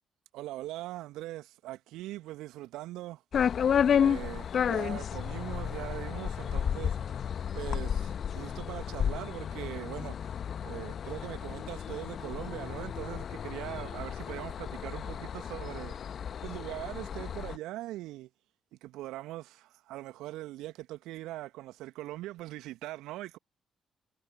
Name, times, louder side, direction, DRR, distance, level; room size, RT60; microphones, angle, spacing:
voice 1, 0.3-3.2 4.0-7.0 7.5-15.9 16.4-18.3 18.7-23.4, right 16 dB, 70° right, 2.0 m, -41 dB
sound 1, 3.3-17.6, left 8 dB, 55° left, 1.2 m, -32 dB
figure-of-eight pair, 40°, 0 cm